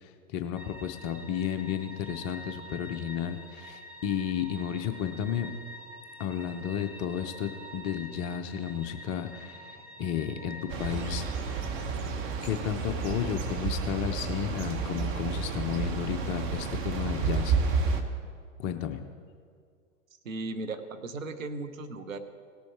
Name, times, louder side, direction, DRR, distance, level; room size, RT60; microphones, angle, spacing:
voice 1, 0.0-5.5 6.2-11.3 12.4-18.0 18.6-19.0, left 8 dB, 25° left, 7 dB, 0.4 m, -33 dB
sound 1, 0.6-17.5, left 1 dB, 5° right, 0.8 m, -48 dB
sound 2, 10.7-18.0, right 5 dB, 30° right, 1.0 m, -31 dB
voice 2, 20.2-22.2, right 3 dB, 75° right, 8 dB, 1.1 m, -36 dB
17.5 x 6.9 x 4.6 m, 2.1 s
figure-of-eight pair, 110°, 40 cm